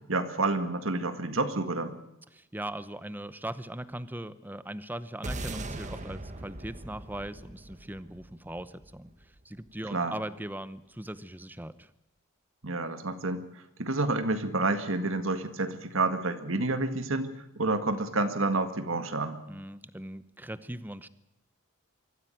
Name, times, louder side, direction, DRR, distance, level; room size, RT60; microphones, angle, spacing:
voice 1, 0.1-2.0 9.9-10.2 12.6-19.4, right 2 dB, 70° right, 9 dB, 1.9 m, -29 dB
voice 2, 2.3-9.1 9.4-11.9 19.5-21.1, right 1 dB, 10° right, 15 dB, 0.8 m, -39 dB
sound 1, 5.2-9.7, right 1 dB, 35° right, 1.5 m, -40 dB
24.0 x 14.5 x 9.3 m, 0.91 s
head